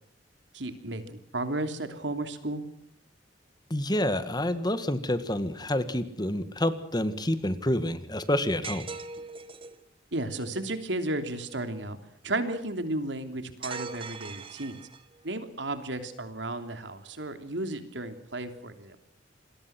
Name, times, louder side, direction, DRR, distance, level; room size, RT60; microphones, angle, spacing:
voice 1, 0.5-2.6 10.1-12.0 12.2-14.8 15.2-19.0, right 2 dB, 85° right, 8 dB, 3.2 m, -33 dB
voice 2, 3.7-8.9, left 1 dB, 25° left, 12 dB, 1.8 m, -28 dB
sound 1, 8.6-9.8 13.6-15.2, right 5 dB, 30° right, 1.6 m, -40 dB
27.5 x 22.0 x 6.1 m, 0.66 s
head